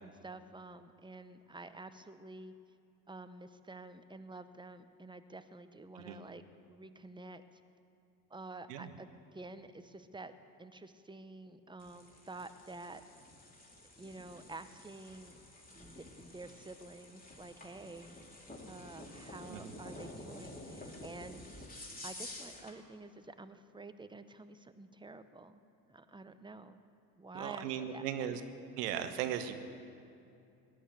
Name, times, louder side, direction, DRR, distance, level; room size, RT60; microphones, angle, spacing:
voice 1, 0.0-2.5 3.1-7.4 8.3-10.3 10.6-13.0 14.0-15.4 15.7-18.2 18.7-21.5 22.0-25.6 25.9-26.9 27.2-28.4, right 2 dB, 10° right, 11 dB, 1.0 m, -49 dB
sound 1, 11.8-22.8, left 1 dB, 20° left, 3.3 m, -50 dB
voice 2, 27.3-28.4 28.8-29.5, right 10 dB, 80° right, 8 dB, 1.3 m, -37 dB
19.0 x 11.0 x 6.7 m, 2.6 s
hypercardioid pair, 60°, 47 cm